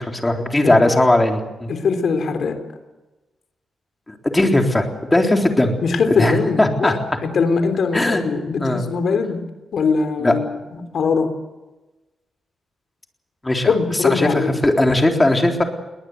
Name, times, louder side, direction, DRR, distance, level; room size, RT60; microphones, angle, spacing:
voice 1, 0.0-1.7 4.1-5.8 6.2-6.9 7.9-8.2 8.6-8.8 10.2-10.3 13.4-13.7 14.0-15.6, left 1 dB, 15° left, 3 dB, 3.8 m, -18 dB
voice 2, 1.7-2.6 5.8-9.4 9.7-10.4 10.7-11.3 13.7-14.6, left 5 dB, 65° left, 7 dB, 3.6 m, -21 dB
21.5 x 19.0 x 8.1 m, 1.1 s
cardioid pair, 95°, 0 cm